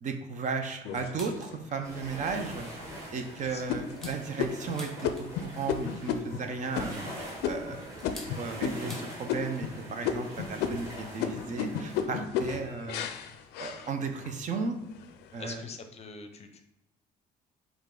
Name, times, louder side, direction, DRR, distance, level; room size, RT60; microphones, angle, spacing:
voice 1, 0.0-2.7 3.1-7.0 7.4-8.0 8.4-13.1 13.6-14.8 15.3-15.6, right 5 dB, 45° right, 5 dB, 0.6 m, -35 dB
sound 1, 0.9-1.7 2.3-2.4 2.9-3.2 3.7-9.0 9.3-9.8 10.0-14.4 14.8-15.4, left 7 dB, 85° left, 0.4 m, -34 dB
sound 2, 0.9-1.6 2.0-2.1 2.5-2.8 3.3-5.5 6.7-9.3 9.6-9.7 10.0-10.3 11.2-11.3 12.2-12.3 13.1-13.3 13.6-13.7 13.9-14.1, left 1 dB, ahead, 0.9 m, -49 dB
sound 3, 1.8-12.1, right 1 dB, 15° right, 1.4 m, -44 dB
voice 2, 15.4-16.6, left 4 dB, 40° left, 6 dB, 0.6 m, -44 dB
5.0 x 2.5 x 3.7 m, 0.88 s
cardioid pair, 110°, 17 cm